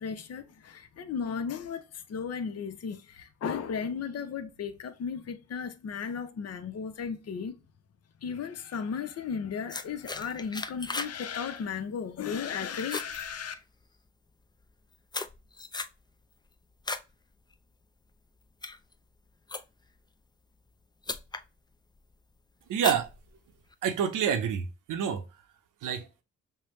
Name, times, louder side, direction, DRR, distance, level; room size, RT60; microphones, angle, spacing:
voice 1, 0.0-7.6 8.2-13.5, left 6 dB, 55° left, 0.6 m, -35 dB
sound 1, 9.7-11.2 11.5-11.8 12.2-12.5 12.8-14.0 14.6-17.1 17.5-17.8 18.4-20.0 20.7-20.8 21.0-21.5 21.9-22.3 22.8-23.7, left 3 dB, 15° left, 0.4 m, -37 dB
voice 2, 22.7-23.1 23.8-25.2 25.8-26.1, right 8 dB, 80° right, 0.7 m, -28 dB
5.4 x 2.1 x 3.0 m
supercardioid pair, 45°, 31 cm